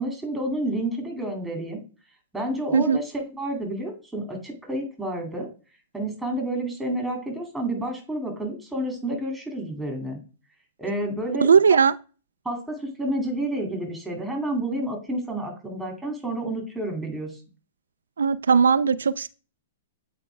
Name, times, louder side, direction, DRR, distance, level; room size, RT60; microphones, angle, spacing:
voice 1, 0.0-1.8 2.3-5.5 5.9-10.2 10.8-11.8 12.4-17.3, right 1 dB, 5° right, 2.2 m, -30 dB
voice 2, 11.4-11.9 18.2-19.3, right 6 dB, 90° right, 0.3 m, -18 dB
8.5 x 4.2 x 3.3 m
hypercardioid pair, 130°, 0 cm